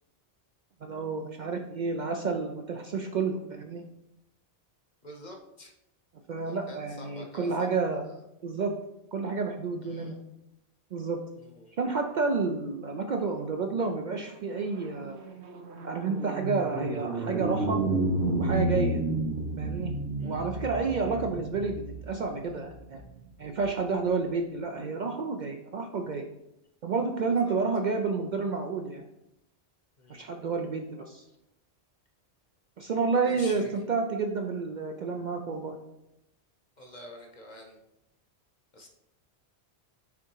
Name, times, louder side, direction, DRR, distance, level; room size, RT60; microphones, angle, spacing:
voice 1, 0.8-3.8 6.3-8.0 8.4-8.7 9.1-10.2 10.9-11.2 11.8-15.2 15.8-17.8 18.4-19.0 19.6-19.9 20.2-23.0 23.4-26.3 26.8-29.0 30.1-31.2 32.8-33.6 33.9-35.8, right 4 dB, 55° right, 4 dB, 0.5 m, -30 dB
voice 2, 5.0-5.7 6.4-8.2 9.8-10.2 11.4-11.7 20.2-20.4 21.0-21.2 27.2-27.6 30.0-30.3 31.3-31.4 33.2-33.7 36.8-37.8 38.7-38.9, left 1 dB, 45° left, 2 dB, 1.0 m, -48 dB
sound 1, 14.4-23.9, right 2 dB, 80° right, 1.0 m, -32 dB
5.9 x 3.7 x 4.5 m, 0.87 s
omnidirectional pair, 1.1 m